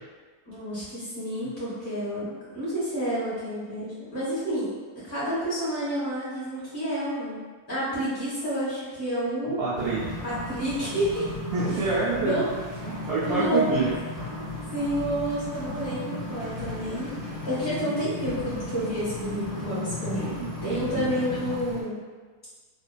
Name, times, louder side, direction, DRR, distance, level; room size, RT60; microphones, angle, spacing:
voice 1, 0.4-4.7 5.0-7.4 7.7-9.6 10.2-11.2 12.1-12.6 13.2-13.7 14.3-14.4 14.7-17.1 17.4-22.0, equal, 20° left, -10 dB, 0.7 m, -29 dB
voice 2, 9.6-10.0 11.5-12.4 12.8-13.9 20.4-21.1, right 4 dB, 70° right, -11 dB, 1.0 m, -27 dB
sound 1, 9.7-21.8, left 2 dB, 25° right, 0.9 m, -35 dB
2.5 x 2.3 x 2.3 m, 1.4 s
omnidirectional pair, 1.7 m